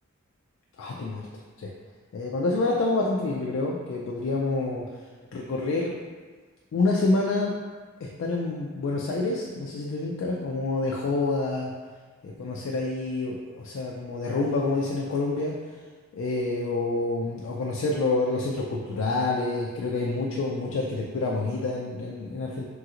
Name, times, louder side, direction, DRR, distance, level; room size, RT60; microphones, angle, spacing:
voice 1, 0.8-1.3 1.6-1.7 2.1-4.9 5.3-6.0 6.7-7.5 8.0-11.7 12.2-15.6 16.1-22.6, left 2 dB, 65° left, -2 dB, 0.3 m, -27 dB
3.1 x 2.8 x 2.4 m, 1.5 s
head